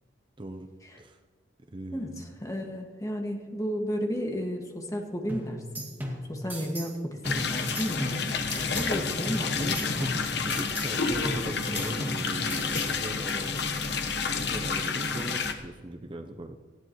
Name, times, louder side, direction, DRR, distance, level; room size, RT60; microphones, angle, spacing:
voice 1, 0.4-0.7 1.0-1.2 1.7-2.3 9.6-13.6 14.3-16.6, right 1 dB, 30° right, 6 dB, 0.7 m, -39 dB
voice 2, 1.9-5.8 6.3-9.6, equal, 20° left, 2 dB, 1.8 m, -33 dB
sound 1, 5.3-7.0 7.2-9.0 9.2-11.0 11.2-13.0, equal, 10° right, 2.1 m, -37 dB
sound 2, 7.2-15.5, left 5 dB, 65° left, 1.2 m, -30 dB
19.0 x 14.5 x 3.1 m, 1.5 s
head